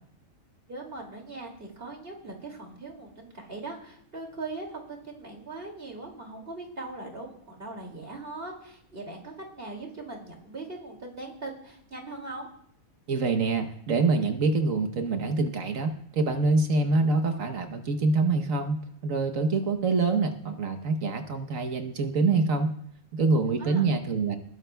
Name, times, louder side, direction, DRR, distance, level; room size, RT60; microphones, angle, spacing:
voice 1, 0.7-12.5 23.6-23.9, right 2 dB, 40° right, 1 dB, 2.7 m, -40 dB
voice 2, 13.1-22.7 23.1-24.4, right 3 dB, 70° right, 7 dB, 1.3 m, -25 dB
20.5 x 13.5 x 2.3 m, 0.69 s
omnidirectional pair, 1.5 m